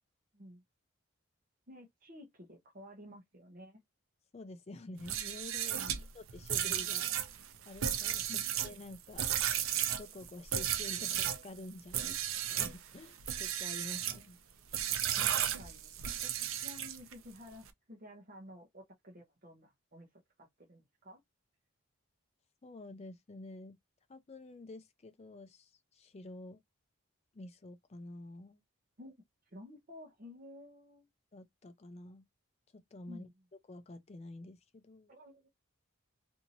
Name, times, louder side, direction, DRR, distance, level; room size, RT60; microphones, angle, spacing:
voice 1, 1.7-3.8 5.8-6.0 8.3-8.4 12.0-12.1 15.1-16.3 16.6-20.1 20.4-21.2 29.0-29.1 29.4-31.1 33.1-33.3 35.1-35.5, left 1 dB, 40° right, 0.8 m, -52 dB
voice 2, 4.3-5.8 6.1-7.3 7.6-8.3 8.6-9.3 10.0-12.1 12.5-14.4 22.6-23.8 24.1-26.6 27.3-28.6 31.3-32.2 32.7-33.3 33.7-35.1, left 2 dB, 30° left, 0.4 m, -49 dB
sound 1, 5.0-11.4 11.9-12.8 13.2-14.2 14.7-17.1, right 10 dB, 70° right, 0.5 m, -34 dB
2.8 x 2.6 x 2.6 m
head